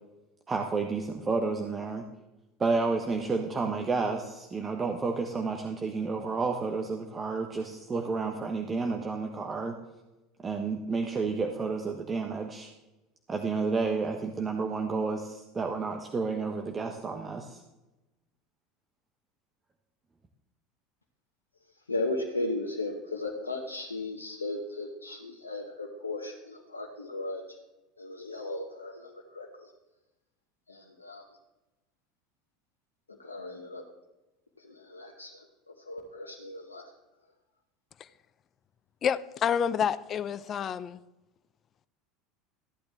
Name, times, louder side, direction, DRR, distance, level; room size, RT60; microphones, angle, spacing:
voice 1, 0.5-2.0 2.6-9.8 10.4-12.7 13.3-17.6, right 4 dB, 25° right, 3 dB, 1.2 m, -31 dB
voice 2, 21.9-27.6 28.0-29.7 30.7-31.4 33.1-33.8 34.6-36.9, left 2 dB, 80° left, 0 dB, 1.0 m, -36 dB
voice 3, 39.0-41.0, left 8 dB, 35° left, 16 dB, 0.5 m, -28 dB
14.5 x 11.5 x 3.5 m, 1.0 s
figure-of-eight pair, 70°, 0 cm